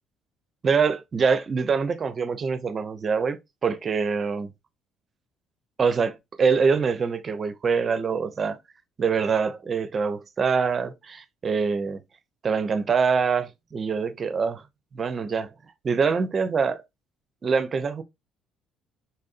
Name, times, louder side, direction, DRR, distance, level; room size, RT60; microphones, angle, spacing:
voice 1, 0.6-4.5 5.8-8.6 9.0-12.0 12.4-14.6 14.9-15.5 15.8-16.8 17.4-18.0, right 5 dB, 45° right, 0.5 m, -24 dB
4.1 x 2.6 x 2.4 m
supercardioid pair, 65°, 0 cm